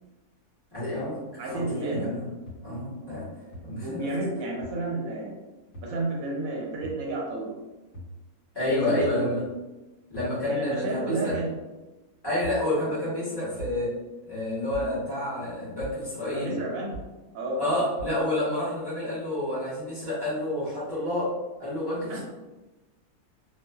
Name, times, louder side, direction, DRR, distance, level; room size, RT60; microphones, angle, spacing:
voice 1, 0.7-2.3 2.6-3.3 3.6-4.1 8.5-9.4 10.1-11.4 12.2-14.0 14.2-16.6 17.6-22.2, left 1 dB, 20° left, -10 dB, 0.7 m, -29 dB
voice 2, 1.4-2.1 3.0-3.3 3.8-5.4 5.8-7.5 8.6-9.3 10.5-11.5 16.3-17.0 17.3-17.9 22.1-22.2, right 2 dB, 70° right, -2 dB, 0.9 m, -31 dB
sound 1, 2.5-2.6 3.5-3.6 4.6-4.7 5.7-5.9 6.8-7.0 7.9-8.1 9.0-9.2 10.1-10.4 11.3-11.5 12.4-12.6 13.6-13.8 14.7-14.9 15.8-16.0 16.9-17.1 18.0-18.2, right 2 dB, 60° left, 1.1 m, -40 dB
2.5 x 2.3 x 2.2 m, 1.1 s
omnidirectional pair, 1.6 m